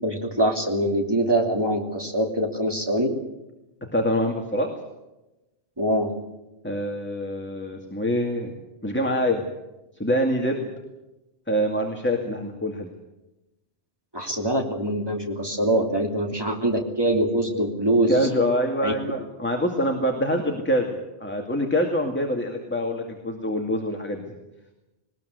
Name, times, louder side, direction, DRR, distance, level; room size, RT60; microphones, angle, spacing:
voice 1, 0.0-3.1 5.8-6.1 14.1-18.2 18.8-18.9, right 1 dB, 20° right, 2 dB, 3.0 m, -23 dB
voice 2, 3.9-4.7 6.6-8.5 8.8-9.4 10.0-10.7 11.5-12.9 18.1-24.2, equal, 10° left, 2 dB, 2.2 m, -25 dB
20.0 x 19.5 x 8.2 m, 0.98 s
omnidirectional pair, 1.2 m